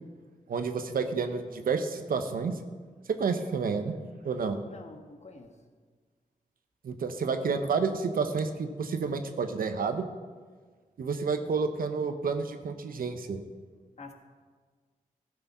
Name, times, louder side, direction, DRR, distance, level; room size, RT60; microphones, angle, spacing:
voice 1, 0.5-2.6 3.2-3.9 4.2-4.6 6.8-10.0 11.0-13.4, right 5 dB, 75° right, 8 dB, 0.9 m, -30 dB
voice 2, 4.6-5.6 14.0-14.1, left 3 dB, 50° left, 5 dB, 1.4 m, -47 dB
13.0 x 6.8 x 5.5 m, 1.5 s
cardioid pair, 55°, 15 cm